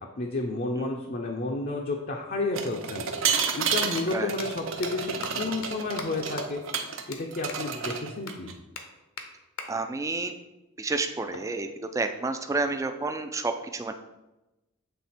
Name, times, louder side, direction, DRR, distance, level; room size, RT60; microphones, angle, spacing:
voice 1, 0.2-8.5, left 2 dB, 45° left, 1 dB, 0.5 m, -32 dB
sound 1, 2.5-7.0 7.3-8.5, right 6 dB, 65° right, 0.6 m, -30 dB
sound 2, 4.0-4.1 4.4-4.5 4.8-4.9 5.2-5.3 5.6-5.7 6.0-6.1 6.4-6.5 6.7-6.8 7.1-7.2 7.5-7.6 7.8-7.9 8.3-8.4 8.8-8.9 9.2-9.3 9.6-9.7 11.3-12.3, left 5 dB, 75° left, 0.8 m, -39 dB
voice 2, 9.7-10.3 10.8-11.7 11.9-13.9, right 3 dB, 15° right, 6 dB, 0.3 m, -30 dB
7.4 x 3.3 x 4.2 m, 1.0 s
head